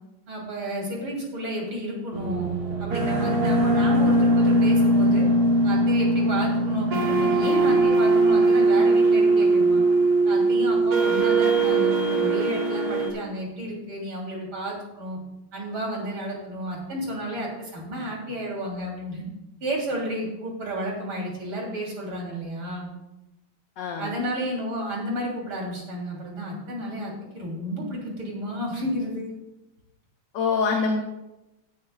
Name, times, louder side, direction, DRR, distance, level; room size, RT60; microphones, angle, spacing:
voice 1, 0.3-2.5 2.8-5.3 5.6-9.8 10.3-15.2 15.5-19.2 19.6-22.9 24.0-29.3, equal, 85° right, -2 dB, 3.9 m, -31 dB
sound 1, 2.1-13.1, right 2 dB, 50° right, 2.2 m, -20 dB
voice 2, 23.8-24.1 30.3-31.0, left 4 dB, 65° left, 2 dB, 1.6 m, -24 dB
18.0 x 8.9 x 2.3 m, 0.94 s
omnidirectional pair, 2.2 m